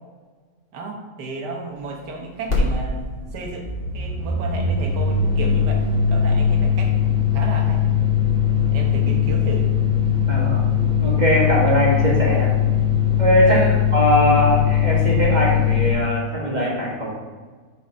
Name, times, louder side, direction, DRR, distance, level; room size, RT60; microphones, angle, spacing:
voice 1, 0.7-7.0 7.3-7.8 8.7-9.7 13.4-13.8, right 3 dB, 90° right, 2 dB, 1.7 m, -33 dB
sound 1, 2.5-2.6 2.9-15.9, left 8 dB, 35° left, 1.8 m, -20 dB
voice 2, 10.3-10.7 11.0-12.5 13.2-13.6 13.9-17.1, equal, 30° right, -4 dB, 1.5 m, -20 dB
6.6 x 5.4 x 4.6 m, 1.4 s
omnidirectional pair, 1.7 m